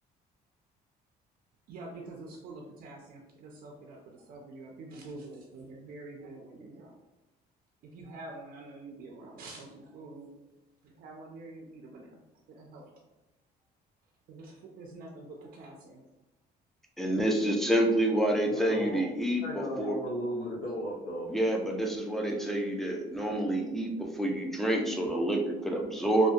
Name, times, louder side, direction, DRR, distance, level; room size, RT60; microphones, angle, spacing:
voice 1, 1.7-7.0 7.8-10.4 10.8-12.2 12.5-12.9 14.3-16.1, right 2 dB, 60° right, -1 dB, 0.4 m, -46 dB
voice 2, 17.0-20.0 21.3-26.3, right 1 dB, ahead, 1 dB, 0.4 m, -28 dB
voice 3, 18.4-19.0 19.4-21.3, equal, 70° left, -5 dB, 0.6 m, -35 dB
2.6 x 2.1 x 2.3 m, 1.1 s
cardioid pair, 110°, 17 cm